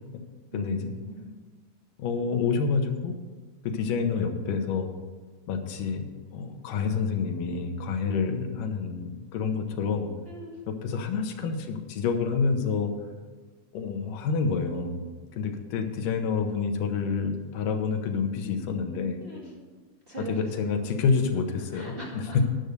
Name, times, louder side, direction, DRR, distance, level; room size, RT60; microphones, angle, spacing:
voice 1, 0.5-0.9 2.0-3.1 3.6-4.9 5.5-10.1 10.7-12.9 13.7-15.0 15.3-19.2 20.3-22.0, left 5 dB, 90° left, 5 dB, 2.6 m, -28 dB
voice 2, 10.2-10.6 19.2-19.5 20.1-20.8 21.7-22.4, right 2 dB, 20° right, -6 dB, 2.0 m, -40 dB
10.5 x 6.8 x 6.5 m, 1.3 s
omnidirectional pair, 3.7 m